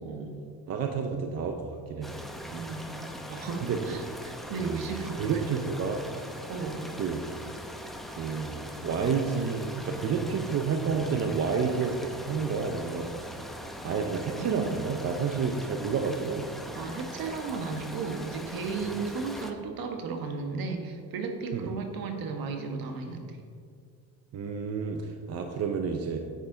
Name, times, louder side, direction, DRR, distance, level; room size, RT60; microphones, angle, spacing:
voice 1, 0.0-0.4 2.5-5.4 6.5-7.0 14.3-14.8 16.7-23.4, right 4 dB, 60° right, 4 dB, 1.4 m, -35 dB
voice 2, 0.7-2.2 3.6-4.0 4.6-4.9 5.2-6.2 7.0-7.2 8.1-13.3 13.8-16.6 21.5-21.7 24.3-26.2, right 5 dB, 40° right, 4 dB, 0.8 m, -30 dB
sound 1, 2.0-19.5, equal, ahead, 0.7 m, -41 dB
10.0 x 8.2 x 4.0 m, 2.2 s
cardioid pair, 120°, 40 cm